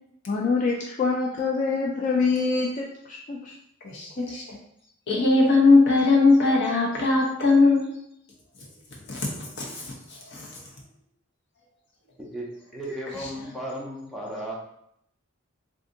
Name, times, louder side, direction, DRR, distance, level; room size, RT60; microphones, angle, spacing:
voice 1, 0.3-3.5, left 4 dB, 40° left, -1 dB, 0.3 m, -25 dB
voice 2, 3.8-4.6 5.1-7.9 9.1-10.6, left 3 dB, 55° left, -2 dB, 0.8 m, -20 dB
voice 3, 12.2-14.6, right 1 dB, ahead, -5 dB, 0.6 m, -35 dB
2.6 x 2.4 x 3.7 m, 0.74 s
head